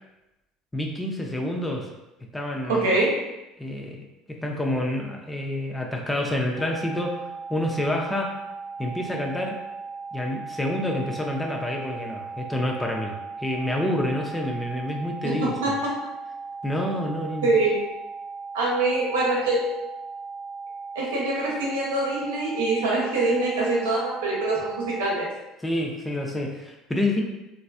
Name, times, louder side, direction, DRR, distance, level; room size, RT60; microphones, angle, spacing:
voice 1, 0.7-1.9 2.3-2.9 3.6-4.0 4.4-8.4 8.8-9.6 10.1-13.1 13.4-15.5 16.6-17.5 25.6-27.2, left 1 dB, 10° left, 0 dB, 0.5 m, -28 dB
voice 2, 2.7-3.1 15.6-15.8 17.4-17.8 18.5-19.6 20.9-25.3, right 2 dB, 75° right, -4 dB, 0.8 m, -24 dB
sound 1, 6.6-25.0, right 4 dB, 30° left, 1.2 m, -37 dB
3.1 x 2.5 x 2.5 m, 0.97 s
figure-of-eight pair, 65°, 0 cm